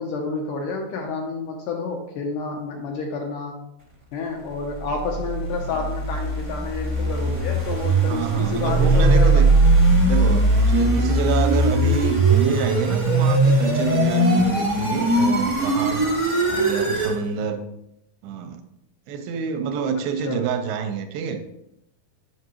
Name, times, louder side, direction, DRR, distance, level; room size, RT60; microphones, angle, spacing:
voice 1, 0.0-3.6 4.1-9.4 20.2-20.4, left 4 dB, 75° left, 2 dB, 2.0 m, -29 dB
sound 1, 5.0-17.2, right 2 dB, 40° right, 0.4 m, -20 dB
voice 2, 8.1-9.5 10.0-16.0 16.5-17.6 18.2-18.6 19.1-21.4, right 6 dB, 80° right, 8 dB, 2.4 m, -27 dB
7.6 x 5.8 x 3.0 m, 0.82 s
omnidirectional pair, 4.4 m